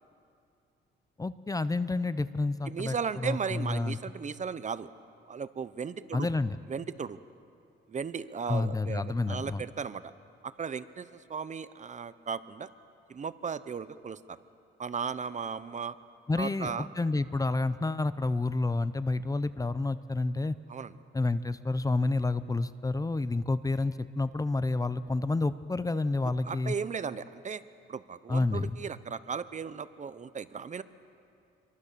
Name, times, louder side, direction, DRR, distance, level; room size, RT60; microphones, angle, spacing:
voice 1, 1.2-4.0 6.1-6.6 8.5-9.6 16.3-20.6 21.1-26.7 28.3-28.8, left 3 dB, 15° left, 14 dB, 0.7 m, -29 dB
voice 2, 2.7-4.9 5.3-6.3 6.7-7.2 7.9-10.1 10.4-12.7 13.1-14.4 14.8-15.9 16.4-16.9 20.7-20.9 26.4-27.6 27.9-30.8, right 6 dB, 35° right, 14 dB, 0.9 m, -36 dB
27.0 x 23.5 x 6.9 m, 2.5 s
cardioid pair, 90°, 20 cm